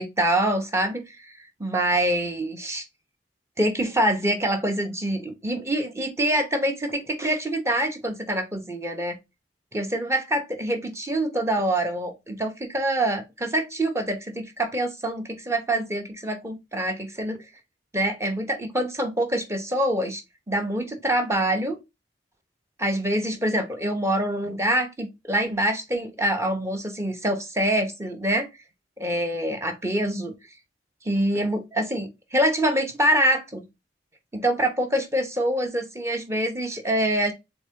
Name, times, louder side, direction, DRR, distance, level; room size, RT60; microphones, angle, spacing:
voice 1, 0.0-1.3 1.6-2.8 3.6-9.2 9.7-17.4 17.9-20.2 20.5-21.8 22.8-28.5 29.0-30.3 31.0-33.6 34.3-37.3, right 1 dB, 15° right, 0.8 m, -25 dB
3.9 x 3.6 x 3.6 m
head